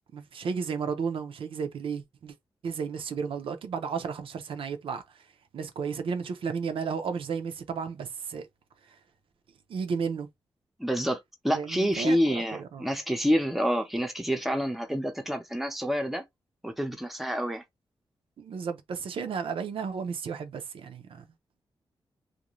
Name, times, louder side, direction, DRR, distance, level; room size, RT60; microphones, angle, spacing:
voice 1, 0.1-2.3 2.6-5.0 5.5-8.5 9.7-10.3 11.5-12.8 18.4-21.2, right 6 dB, 80° right, 0.5 m, -33 dB
voice 2, 10.8-11.2 11.4-16.2 16.6-17.6, equal, ahead, 0.6 m, -28 dB
2.5 x 2.1 x 3.0 m
wide cardioid pair, 115°, 9 cm